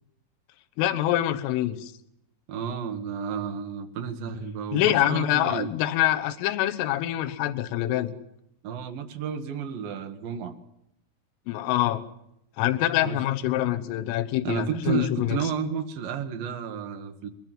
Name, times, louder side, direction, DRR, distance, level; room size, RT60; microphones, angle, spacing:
voice 1, 0.8-1.9 4.7-8.1 11.5-12.0 12.6-15.4, left 13 dB, 80° left, 7 dB, 3.7 m, -25 dB
voice 2, 2.5-5.7 8.6-10.6 13.0-13.2 14.4-17.3, right 7 dB, 65° right, 6 dB, 2.3 m, -31 dB
22.0 x 21.0 x 7.6 m, 0.78 s
omnidirectional pair, 5.9 m